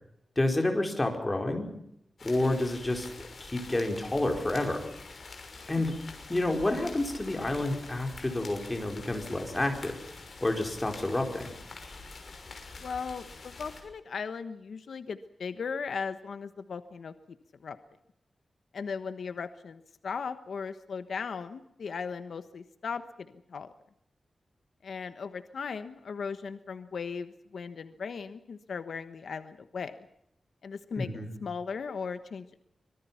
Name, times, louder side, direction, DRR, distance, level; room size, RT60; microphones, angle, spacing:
voice 1, 0.4-1.7 2.2-4.8 5.7-5.9 6.3-9.9 10.4-11.5 31.0-31.3, left 2 dB, 20° left, 3 dB, 4.7 m, -29 dB
sound 1, 2.2-13.8, left 3 dB, 50° left, 6.0 m, -46 dB
voice 2, 12.8-17.1 17.6-17.8 18.7-23.7 24.8-30.1 30.6-31.1 31.4-32.6, left 5 dB, 80° left, 10 dB, 1.2 m, -37 dB
25.5 x 23.0 x 5.8 m, 0.77 s
wide cardioid pair, 145°, 0 cm